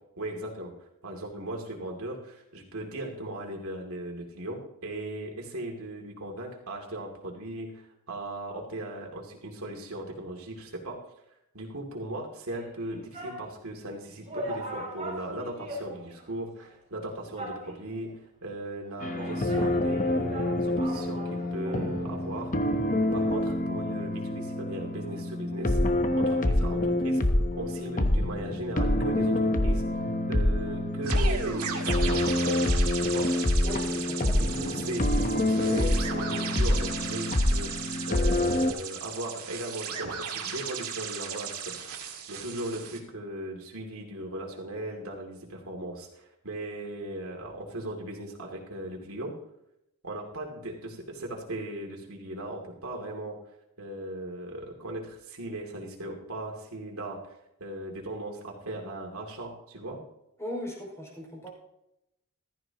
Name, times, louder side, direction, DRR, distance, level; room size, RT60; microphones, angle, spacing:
voice 1, 0.2-0.7 1.0-11.0 11.5-22.5 23.1-25.8 26.1-29.8 30.3-32.6 33.0-33.3 34.3-37.7 38.1-41.7 42.3-49.4 50.0-53.4 53.8-57.3 57.6-60.0, right 1 dB, 75° right, 0 dB, 2.8 m, -38 dB
sound 1, 12.5-13.5 13.9-14.0 14.3-16.3 16.6-16.7 17.3-18.1 18.8-22.0 22.3-22.4, right 1 dB, 30° right, 3.6 m, -40 dB
sound 2, 19.0-38.7, left 1 dB, 35° left, 1.0 m, -26 dB
sound 3, 31.0-43.0, right 7 dB, 90° right, 2.1 m, -36 dB
voice 2, 33.6-34.5 60.4-61.5, left 1 dB, 15° left, -3 dB, 5.5 m, -38 dB
15.0 x 14.0 x 3.0 m, 0.83 s
head